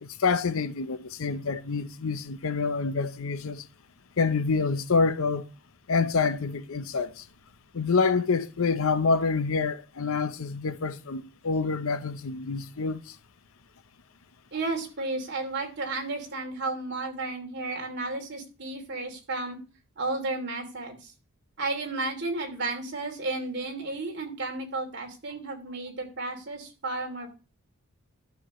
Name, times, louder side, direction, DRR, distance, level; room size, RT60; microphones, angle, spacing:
voice 1, 0.0-3.7 4.2-5.5 5.9-7.2 7.7-13.1, left 4 dB, 70° left, 0.7 m, -27 dB
voice 2, 14.5-19.6 20.0-21.1 21.6-27.3, right 2 dB, 50° right, 2.9 m, -33 dB
12.5 x 6.8 x 3.0 m
head